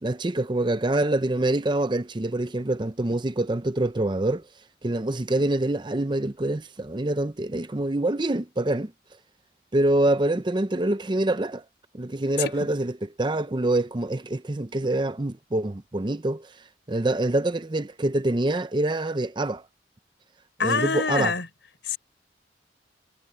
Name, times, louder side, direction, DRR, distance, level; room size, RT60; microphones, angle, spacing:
voice 1, 0.0-4.4 4.8-8.9 9.7-11.6 11.9-16.5 16.9-19.6 20.6-21.3, right 1 dB, 25° right, 0.6 m, -25 dB
voice 2, 20.6-21.5 21.8-22.0, left 4 dB, 80° left, 4.6 m, -25 dB
head